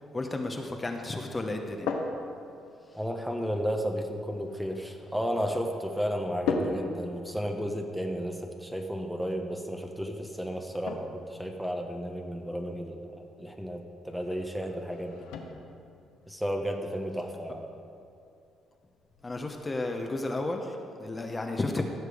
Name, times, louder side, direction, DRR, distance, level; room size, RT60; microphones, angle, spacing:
voice 1, 0.1-1.9 19.2-21.8, left 2 dB, 25° left, 3 dB, 1.2 m, -32 dB
sound 1, 1.4-19.5, left 4 dB, 80° left, 1.0 m, -41 dB
voice 2, 2.9-15.3 16.3-17.7, equal, 5° right, 3 dB, 1.3 m, -33 dB
15.5 x 6.6 x 5.1 m, 2.6 s
hypercardioid pair, 55°, 0 cm